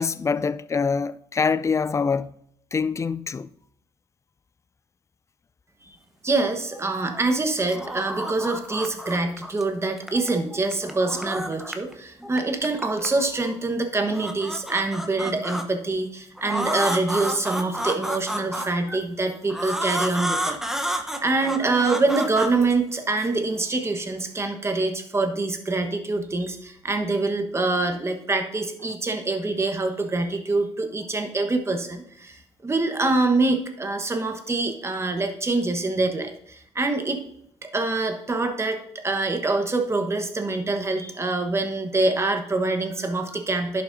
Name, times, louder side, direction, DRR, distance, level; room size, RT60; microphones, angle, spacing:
voice 1, 0.0-2.3 2.7-3.5, left 5 dB, 25° left, 0.4 m, -24 dB
voice 2, 6.2-37.2 37.6-43.8, right 3 dB, 25° right, 1.2 m, -25 dB
sound 1, 6.7-7.3 7.6-9.6 10.0-11.9 12.2-13.5 14.0-15.7 16.4-19.0 19.5-23.3, equal, 5° right, 0.9 m, -31 dB
11.0 x 5.8 x 2.7 m
supercardioid pair, 80°, 12 cm